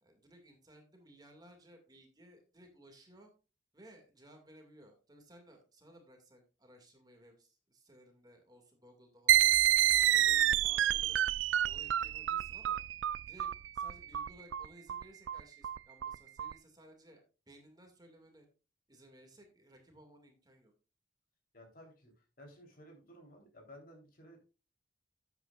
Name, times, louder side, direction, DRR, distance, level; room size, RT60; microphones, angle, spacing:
voice 1, 0.0-3.3 3.7-9.7 10.1-11.2 11.6-12.8 13.3-17.2 17.5-18.5 18.9-20.7, right 1 dB, 20° right, 3 dB, 2.2 m, -59 dB
sound 1, 9.3-16.5, right 12 dB, 90° right, 0.4 m, -29 dB
voice 2, 21.5-22.1 22.4-24.4, equal, 50° left, 2 dB, 3.6 m, -55 dB
12.5 x 8.3 x 2.5 m, 0.32 s
head